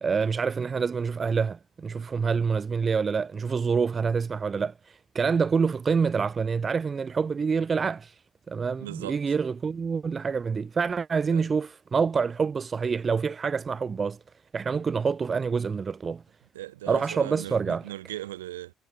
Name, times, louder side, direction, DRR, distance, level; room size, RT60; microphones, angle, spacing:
voice 1, 0.0-8.1 8.5-14.2 14.5-16.2 16.9-17.8, right 5 dB, 35° right, 0.5 m, -27 dB
voice 2, 8.8-9.2 11.3-11.5 16.5-18.7, right 15 dB, 75° right, 3.9 m, -38 dB
figure-of-eight pair, 45°, 0 cm